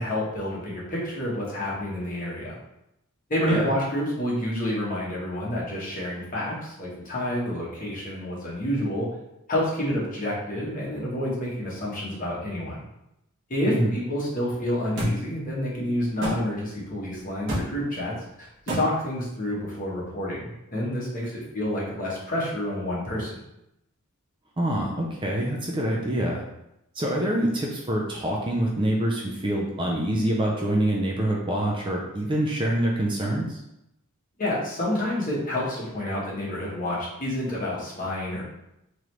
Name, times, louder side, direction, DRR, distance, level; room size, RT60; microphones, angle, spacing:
voice 1, 0.0-2.5 3.3-9.1 9.5-12.8 13.5-23.4 34.4-38.4, left 1 dB, 35° left, -5 dB, 1.2 m, -29 dB
sound 1, 15.0-15.1 16.2-16.4 17.5-17.7 18.7-18.8, equal, 55° right, 1.2 m, -25 dB
voice 2, 24.6-26.4 27.0-33.6, right 1 dB, 20° right, -2 dB, 0.5 m, -25 dB
3.8 x 3.1 x 3.1 m, 0.85 s
head